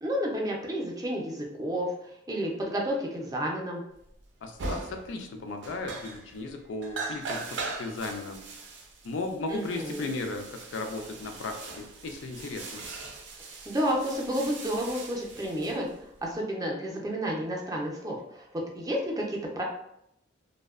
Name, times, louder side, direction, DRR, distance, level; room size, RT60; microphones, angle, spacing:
voice 1, 0.0-3.8 9.5-10.1 13.7-15.9 16.2-19.6, equal, 20° right, -1 dB, 0.4 m, -31 dB
sound 1, 4.2-4.3 4.6-5.3 5.6-6.5 6.8-16.3, right 3 dB, 75° right, 0.4 m, -40 dB
voice 2, 4.4-8.4 9.0-12.8, left 3 dB, 85° left, 5 dB, 0.4 m, -36 dB
2.6 x 2.1 x 2.3 m, 0.77 s
head